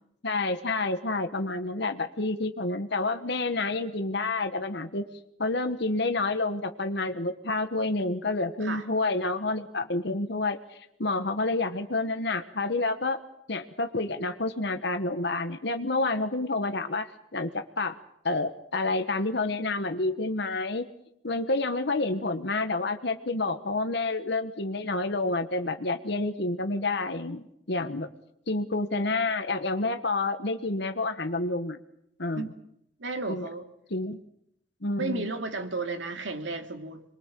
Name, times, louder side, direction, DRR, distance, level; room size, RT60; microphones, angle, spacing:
voice 1, 0.2-5.0 5.4-13.2 13.5-17.9 18.2-20.9 21.2-28.1 28.5-31.8 32.2-32.5 33.3-33.5 33.9-34.2 34.8-35.3, left 2 dB, 55° left, 8 dB, 1.3 m, -29 dB
voice 2, 33.0-33.7 35.0-37.0, right 3 dB, 65° right, 6 dB, 2.6 m, -33 dB
27.0 x 22.0 x 7.5 m, 0.77 s
head